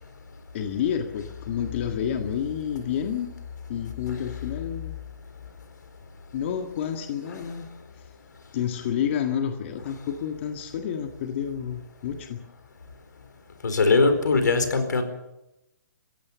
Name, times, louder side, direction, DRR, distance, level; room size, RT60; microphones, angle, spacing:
voice 1, 0.5-3.3 3.7-5.0 6.3-7.7 8.0-8.1 8.5-12.4, left 8 dB, 40° left, 5 dB, 1.8 m, -29 dB
voice 2, 13.6-15.0, left 3 dB, 80° left, 8 dB, 4.5 m, -20 dB
27.5 x 15.5 x 7.1 m, 0.92 s
hypercardioid pair, 150°, 10 cm